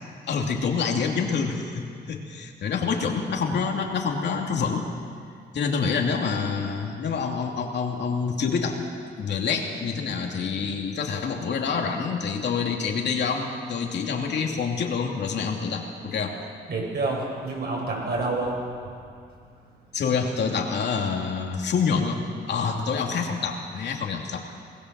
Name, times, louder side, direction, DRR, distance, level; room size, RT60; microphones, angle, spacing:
voice 1, 0.3-4.9 5.5-8.8 9.2-16.4 19.9-24.4, left 5 dB, 60° left, 1 dB, 2.8 m, -27 dB
voice 2, 16.7-18.6, right 3 dB, 55° right, -2 dB, 7.7 m, -28 dB
20.5 x 17.5 x 7.7 m, 2.3 s
cardioid pair, 90°, 20 cm